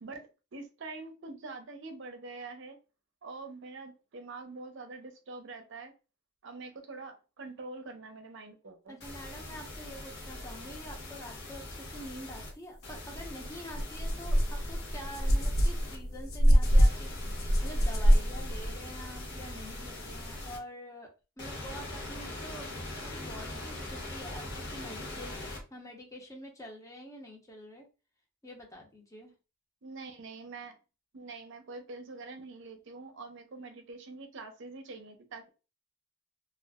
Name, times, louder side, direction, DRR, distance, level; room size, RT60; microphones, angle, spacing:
voice 1, 0.0-2.8 3.2-5.9 6.4-9.0 29.8-30.7 31.1-35.5, right 3 dB, 60° right, 0.5 m, -45 dB
voice 2, 8.9-17.1 17.6-21.1 21.4-22.7 23.0-27.9 28.4-29.3, equal, 15° left, 0.6 m, -46 dB
sound 1, 9.0-12.5 12.8-16.0 16.6-20.6 21.4-25.6, left 1 dB, 50° left, 1.0 m, -42 dB
sound 2, 13.1-13.3 13.7-18.7, equal, 80° left, 0.6 m, -25 dB
2.4 x 2.0 x 3.4 m
head